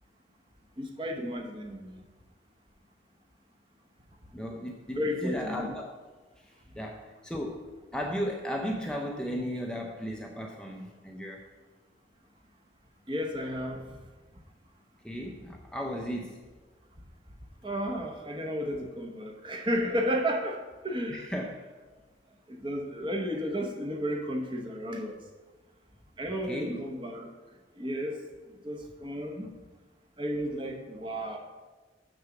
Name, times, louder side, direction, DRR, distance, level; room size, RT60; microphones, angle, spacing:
voice 1, 0.8-2.0 4.9-5.7 13.1-13.9 17.6-21.3 22.5-25.2 26.2-27.3 27.7-28.2 28.6-29.5 30.2-31.4, equal, 25° right, 2 dB, 0.9 m, -33 dB
voice 2, 4.3-5.9 6.8-11.4 15.0-16.4 21.1-21.5 26.5-26.8, equal, 5° left, 0 dB, 0.5 m, -35 dB
6.9 x 6.5 x 5.9 m, 1.3 s
head